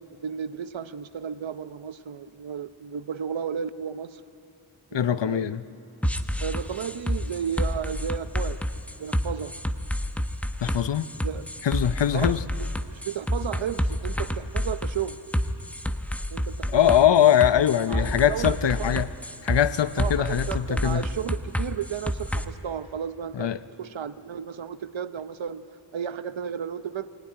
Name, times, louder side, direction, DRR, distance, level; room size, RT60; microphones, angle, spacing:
voice 1, 0.1-4.2 4.9-5.5 6.4-8.6 9.0-9.6 11.2-11.4 12.1-15.2 16.3-16.9 17.9-19.1 20.0-23.5 23.8-25.7 25.9-27.1, right 8 dB, 75° right, 0.9 m, -33 dB
voice 2, 4.9-5.6 10.6-11.1 11.6-12.4 16.7-19.1 19.4-21.0 23.3-23.6, left 10 dB, 65° left, 0.8 m, -22 dB
sound 1, 6.0-22.4, equal, 5° left, 0.9 m, -29 dB
22.5 x 19.0 x 9.9 m
wide cardioid pair, 105°, 46 cm